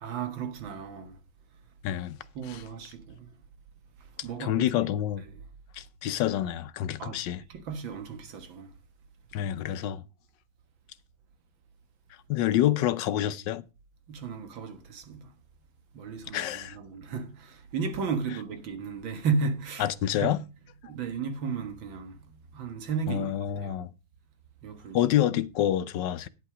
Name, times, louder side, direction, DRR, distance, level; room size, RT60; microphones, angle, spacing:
voice 1, 0.0-1.2 2.4-3.2 4.2-4.8 7.0-7.2 7.5-8.7 14.1-15.3 15.9-19.9 20.2-20.4 20.8-22.2 22.5-23.8 24.6-25.1, right 5 dB, 75° right, 2.1 m, -34 dB
voice 2, 1.8-2.2 2.4-2.6 4.4-5.2 5.7-7.4 9.3-10.0 12.3-13.6 16.3-16.8 19.8-20.4 23.1-23.9 24.9-26.3, left 12 dB, 70° left, 1.3 m, -27 dB
9.9 x 8.4 x 4.9 m
omnidirectional pair, 2.2 m